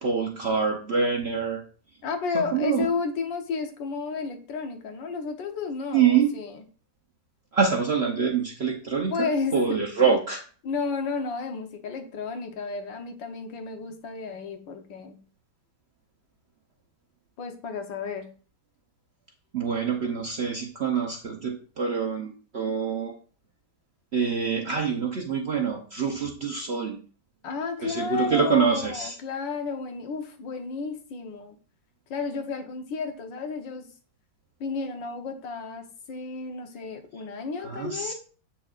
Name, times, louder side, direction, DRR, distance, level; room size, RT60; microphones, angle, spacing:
voice 1, 0.0-1.6 2.3-2.9 5.9-6.3 7.5-10.4 19.5-23.1 24.1-27.0 27.8-29.2 37.6-38.1, right 6 dB, 50° right, 2 dB, 0.8 m, -25 dB
voice 2, 2.0-6.6 9.1-9.8 10.6-15.2 17.4-18.3 27.4-31.6 32.1-33.9 34.6-38.1, left 4 dB, 80° left, 5 dB, 1.7 m, -32 dB
8.3 x 5.7 x 2.4 m, 0.39 s
omnidirectional pair, 2.0 m